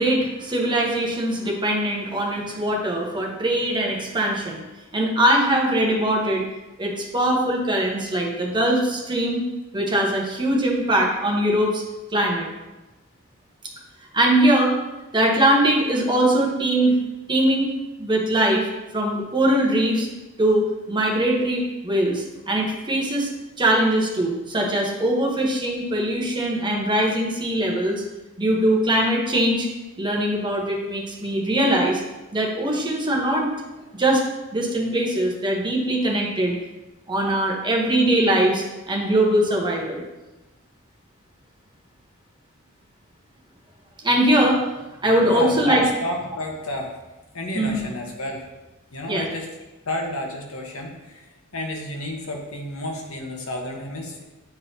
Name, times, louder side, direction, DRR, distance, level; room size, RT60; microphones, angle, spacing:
voice 1, 0.0-4.6 4.9-6.4 6.8-9.4 9.7-11.8 12.1-12.5 14.1-14.8 15.1-17.0 17.3-17.7 18.0-18.7 18.9-20.1 20.4-23.3 23.6-28.0 28.4-29.7 30.0-32.0 32.3-33.5 33.9-34.2 34.5-36.6 37.1-40.0 44.0-44.6 45.0-45.8 47.5-47.9 49.1-49.3, right 1 dB, 20° right, -1 dB, 1.0 m, -21 dB
voice 2, 45.2-46.9 47.3-48.5 48.9-49.5 49.8-51.3 51.5-54.2, left 1 dB, 75° left, 1 dB, 1.1 m, -31 dB
9.3 x 3.9 x 2.8 m, 1.1 s
head